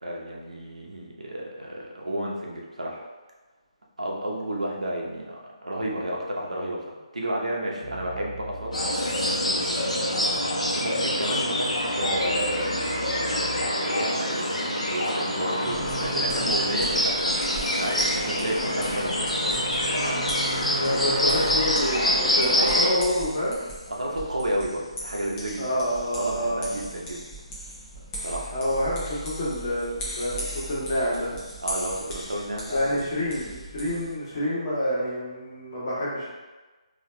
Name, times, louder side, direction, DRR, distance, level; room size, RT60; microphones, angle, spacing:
voice 1, 0.0-3.0 4.0-8.8 9.0-9.3 10.7-11.7 11.9-13.1 13.8-14.5 14.8-19.7 23.9-25.9 26.2-27.2 28.2-28.5 31.6-33.0, right 1 dB, 90° right, -2 dB, 0.8 m, -32 dB
sound 1, 7.8-13.7 15.6-21.7, right 5 dB, 25° right, 0.7 m, -41 dB
sound 2, 8.7-22.9, left 1 dB, 90° left, 0.9 m, -25 dB
sound 3, 15.7-34.2, equal, 15° left, 0.7 m, -39 dB
voice 2, 16.0-16.4 20.6-23.6 25.6-26.7 28.5-31.3 32.7-36.3, equal, 40° left, -8 dB, 1.4 m, -27 dB
4.1 x 2.8 x 2.2 m, 1.2 s
figure-of-eight pair, 150°, 3 cm